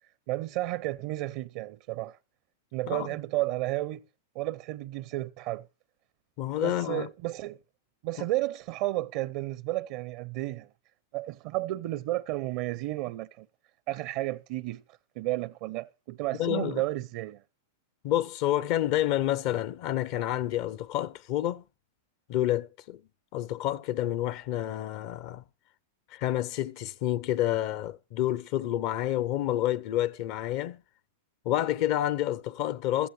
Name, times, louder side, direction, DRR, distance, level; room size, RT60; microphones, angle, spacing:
voice 1, 0.3-2.2 2.7-4.0 4.3-5.7 6.6-7.6 8.0-10.7 11.1-13.5 13.9-14.8 15.2-17.4, right 17 dB, 50° right, 0.6 m, -32 dB
voice 2, 6.4-7.1 16.4-16.8 18.0-21.6 22.3-23.0 23.3-25.4 26.1-30.8 31.4-33.1, left 13 dB, 50° left, 0.7 m, -29 dB
15.5 x 14.0 x 3.2 m
hypercardioid pair, 100°, 0 cm